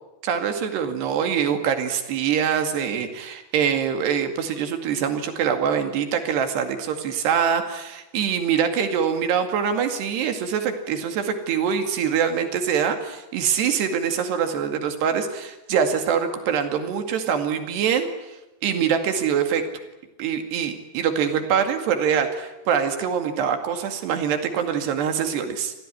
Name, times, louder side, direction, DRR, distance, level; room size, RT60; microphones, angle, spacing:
voice 1, 0.2-18.1 18.6-19.6 20.2-25.7, right 7 dB, 90° right, 6 dB, 4.3 m, -24 dB
27.0 x 17.0 x 10.0 m, 1.0 s
omnidirectional pair, 4.7 m